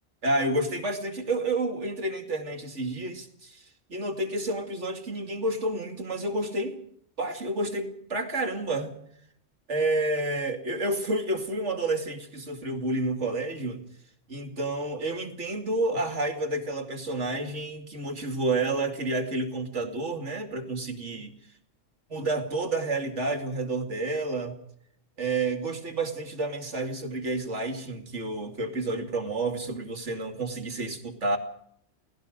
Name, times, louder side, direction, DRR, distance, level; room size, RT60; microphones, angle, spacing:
voice 1, 0.2-3.6 3.9-6.8 7.2-9.0 9.7-13.8 14.3-21.3 22.1-24.6 25.2-31.4, right 2 dB, 70° right, 6 dB, 3.0 m, -30 dB
29.0 x 18.5 x 5.2 m, 0.71 s
omnidirectional pair, 1.3 m